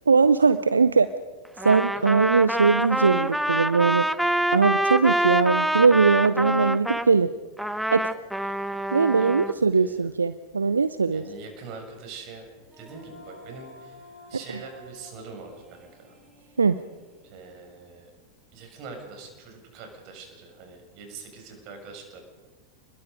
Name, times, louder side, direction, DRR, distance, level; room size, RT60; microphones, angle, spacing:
voice 1, 0.1-1.1 1.6-4.1 4.5-7.3 7.9-8.1 8.9-11.2 14.5-14.6 16.6-16.8, right 4 dB, 75° right, 14 dB, 0.6 m, -20 dB
Trumpet, 1.6-7.1 7.6-9.5, right 1 dB, ahead, 0.8 m, -26 dB
voice 2, 9.1-10.0 11.1-12.5 12.8-14.0 14.3-16.1 17.2-18.1 18.5-22.2, right 4 dB, 40° right, 3 dB, 6.5 m, -43 dB
Female singing, 12.6-17.8, left 1 dB, 25° right, 7.8 m, -51 dB
28.5 x 21.5 x 5.2 m, 1.3 s
figure-of-eight pair, 90°, 0 cm